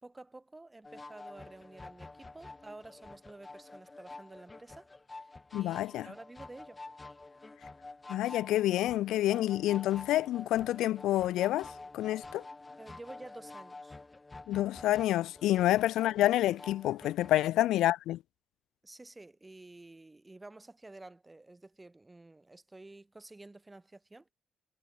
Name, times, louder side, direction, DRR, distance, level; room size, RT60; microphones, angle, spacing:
voice 1, 0.0-6.8 12.8-14.0 17.4-17.5 18.8-24.3, right 2 dB, 15° right, 3.1 m, -51 dB
sound 1, 0.8-17.4, left 3 dB, 20° left, 1.4 m, -49 dB
voice 2, 5.5-6.1 8.1-12.4 14.5-18.2, left 14 dB, 85° left, 0.4 m, -28 dB
cardioid pair, 90°, 0 cm